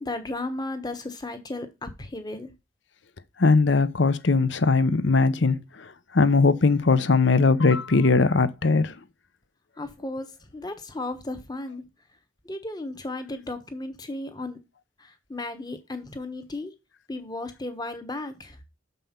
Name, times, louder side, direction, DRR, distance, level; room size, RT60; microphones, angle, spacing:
voice 1, 0.0-2.5 9.8-10.3 10.5-11.8 12.4-14.6 15.3-16.7 17.1-18.6, left 2 dB, 20° left, 1.1 m, -34 dB
voice 2, 3.4-5.6 6.1-8.9, left 3 dB, 65° left, 0.8 m, -20 dB
6.8 x 5.5 x 5.7 m
head